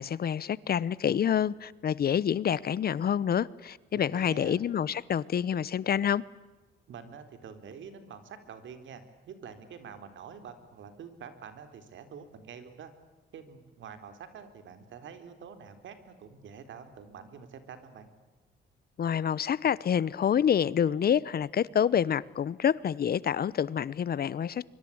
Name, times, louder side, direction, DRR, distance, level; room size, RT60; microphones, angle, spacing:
voice 1, 0.0-6.2 19.0-24.7, left 8 dB, 50° left, 0.9 m, -27 dB
voice 2, 3.9-4.6 6.9-12.9 13.3-18.1, right 6 dB, 70° right, 3.9 m, -47 dB
24.5 x 24.5 x 8.7 m
cardioid pair, 90°, 20 cm